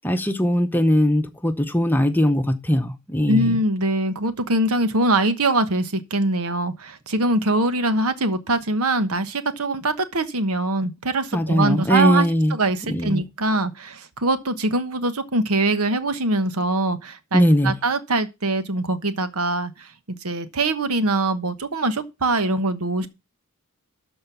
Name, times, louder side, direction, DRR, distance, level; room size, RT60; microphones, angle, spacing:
voice 1, 0.0-3.6 11.3-12.6 12.9-13.2 17.3-17.7, equal, 10° left, 0.8 m, -20 dB
voice 2, 3.3-12.2 12.5-19.9 20.2-23.1, right 2 dB, 80° right, 1.2 m, -23 dB
13.0 x 4.4 x 6.9 m
head